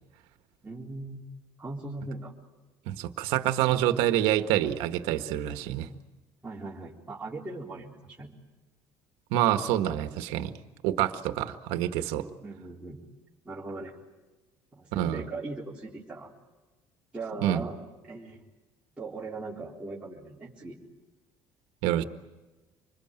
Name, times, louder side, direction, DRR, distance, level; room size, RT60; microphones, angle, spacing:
voice 1, 0.6-1.2 1.6-2.3 6.4-8.3 12.4-13.0 13.4-14.0 14.7-16.3 17.1-17.8 18.0-18.4 19.0-20.8, right 3 dB, 15° right, -7 dB, 3.9 m, -39 dB
voice 2, 2.9-5.9 9.3-10.5 10.8-12.2 14.9-15.2 17.4-17.6 21.8-22.0, right 12 dB, 85° right, 8 dB, 1.7 m, -27 dB
27.0 x 21.0 x 9.0 m, 1.2 s
cardioid pair, 115°, 9 cm